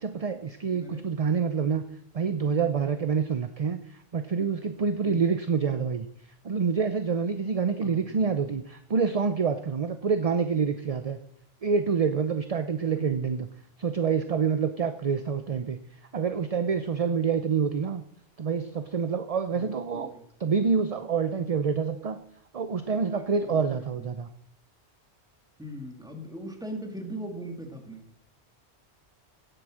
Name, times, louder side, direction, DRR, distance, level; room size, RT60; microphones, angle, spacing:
voice 1, 0.0-1.8 2.1-3.8 4.1-6.1 6.4-11.2 11.6-13.5 13.8-15.8 16.1-18.0 18.4-20.1 20.4-22.2 22.5-24.3, right 5 dB, 40° right, 10 dB, 0.7 m, -27 dB
voice 2, 0.7-1.0 5.0-5.3 7.8-8.3 12.9-13.4 19.5-20.2 22.9-24.1 25.6-28.0, equal, 5° right, 3 dB, 2.2 m, -41 dB
17.0 x 7.9 x 6.4 m, 0.71 s
omnidirectional pair, 1.1 m